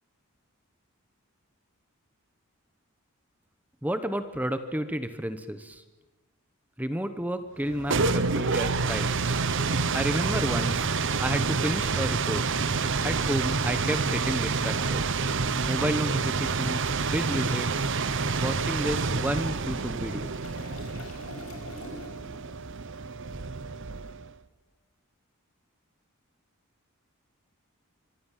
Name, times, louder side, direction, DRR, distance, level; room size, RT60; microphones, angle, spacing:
voice 1, 3.8-5.8 6.8-9.4 9.9-10.9 11.2-12.4 13.0-15.0 15.7-17.9 18.4-20.3, right 1 dB, 5° right, 10 dB, 1.0 m, -31 dB
sound 1, 7.6-24.3, right 4 dB, 60° right, 1.0 m, -28 dB
sound 2, 8.0-12.9, right 2 dB, 85° right, 2.1 m, -35 dB
Toilet flush, 16.4-22.4 22.7-22.9, left 2 dB, 85° left, 5.5 m, -48 dB
24.5 x 24.5 x 7.5 m, 1.1 s
head